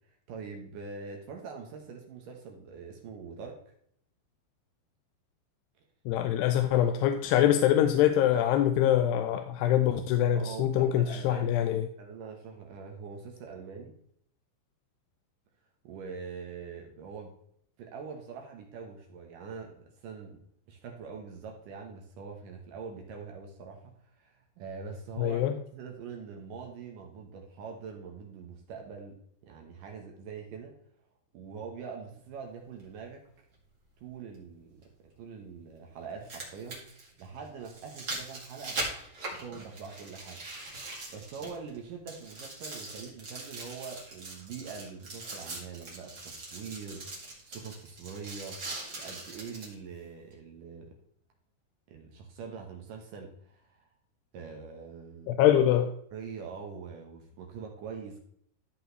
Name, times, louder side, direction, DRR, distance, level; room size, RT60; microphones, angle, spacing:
voice 1, 0.1-3.6 10.3-11.6 12.0-13.9 15.8-17.3 17.8-20.4 20.7-25.4 25.7-29.1 29.4-30.7 31.3-33.2 34.0-34.9 35.2-36.8 37.2-38.8 39.4-40.4 41.1-48.6 49.0-51.0 51.9-53.9 54.3-55.4 56.1-58.2, right 5 dB, 70° right, 2.3 m, -43 dB
voice 2, 6.1-11.9 25.2-25.6 55.3-55.9, left 11 dB, 85° left, 2.6 m, -24 dB
sound 1, 32.8-32.9 34.8-34.9 36.0-41.8 42.1-49.7 50.3-50.4, right 2 dB, 35° right, 1.8 m, -41 dB
13.5 x 5.4 x 3.1 m
omnidirectional pair, 4.9 m